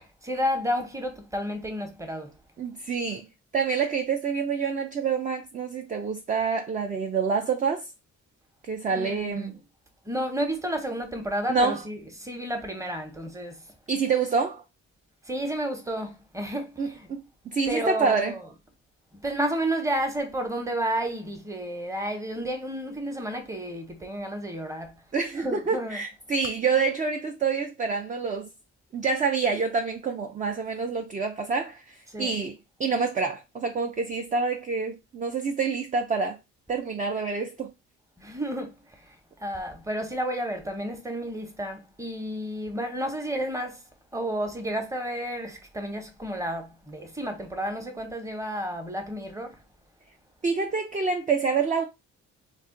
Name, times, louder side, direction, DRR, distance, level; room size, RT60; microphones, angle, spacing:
voice 1, 0.2-2.3 8.9-9.6 10.0-13.6 15.3-17.1 17.7-18.5 19.1-24.9 25.4-26.0 32.1-32.3 38.2-43.8 44.1-49.6, equal, 10° right, 0.8 m, -31 dB
voice 2, 2.6-3.3 3.5-7.8 8.6-9.5 11.5-11.8 13.9-14.6 16.8-18.3 25.1-28.5 28.9-36.4 36.7-37.7 50.4-51.8, right 5 dB, 25° right, 0.4 m, -27 dB
2.4 x 2.1 x 3.6 m
cardioid pair, 90°, 30 cm